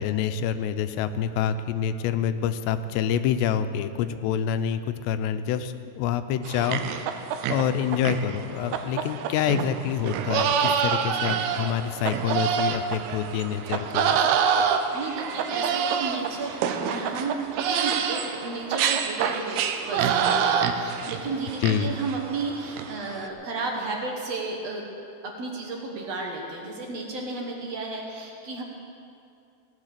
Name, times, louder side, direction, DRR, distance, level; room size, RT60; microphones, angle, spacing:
voice 1, 0.0-7.1 7.5-14.2 21.6-21.9, left 8 dB, 90° left, 10 dB, 2.8 m, -27 dB
sound 1, 6.5-23.3, right 7 dB, 80° right, 2.6 m, -27 dB
voice 2, 14.9-24.8 25.2-28.6, right 3 dB, 60° right, 0 dB, 1.8 m, -33 dB
17.5 x 10.5 x 6.6 m, 2.6 s
omnidirectional pair, 4.8 m